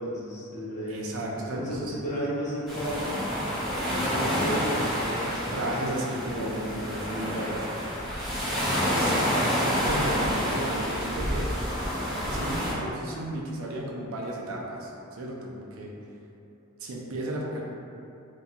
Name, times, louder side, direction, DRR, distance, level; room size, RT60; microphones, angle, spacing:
voice 1, 0.0-1.1 1.5-3.1 3.8-5.9 6.3-6.6 7.0-7.5, equal, 35° left, -9 dB, 0.6 m, -33 dB
voice 2, 0.9-1.9 5.5-8.2 8.8-9.1 9.5-11.5 12.2-15.9 16.8-17.6, right 1 dB, 70° right, -2 dB, 0.4 m, -34 dB
sound 1, 2.7-12.7, equal, ahead, 0.7 m, -28 dB
2.3 x 2.3 x 2.7 m, 2.7 s
head